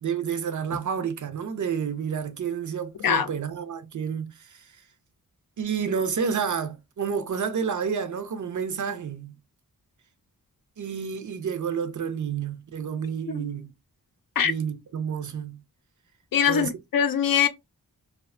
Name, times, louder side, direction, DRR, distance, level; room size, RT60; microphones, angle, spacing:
voice 1, 0.0-4.7 5.6-9.3 10.8-13.7 14.4-15.6 16.5-16.7, right 7 dB, 55° right, 0.5 m, -30 dB
voice 2, 16.3-17.5, left 8 dB, 75° left, 0.5 m, -22 dB
2.4 x 2.1 x 2.4 m
wide cardioid pair, 70°, 35 cm